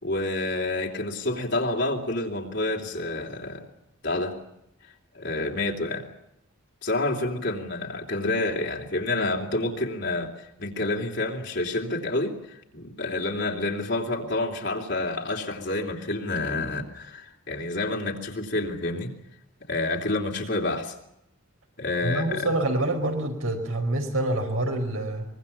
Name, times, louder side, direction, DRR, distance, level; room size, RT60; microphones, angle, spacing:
voice 1, 0.0-3.7 4.0-4.4 5.1-6.1 6.8-19.1 19.7-20.9 21.8-22.5, left 2 dB, 55° left, 0 dB, 3.2 m, -28 dB
voice 2, 22.0-25.3, right 1 dB, 75° right, 3 dB, 5.2 m, -26 dB
24.0 x 23.0 x 7.3 m, 0.82 s
head